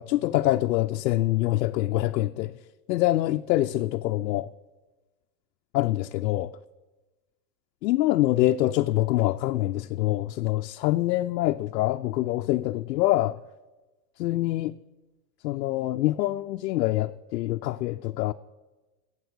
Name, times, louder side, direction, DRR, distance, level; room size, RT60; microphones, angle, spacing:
voice 1, 0.0-2.5 2.9-4.5 5.7-6.0 6.2-6.5 7.8-13.4 14.2-14.7 15.4-18.3, left 16 dB, 80° left, 0.5 m, -25 dB
10.5 x 7.5 x 8.0 m
supercardioid pair, 165°, 48 cm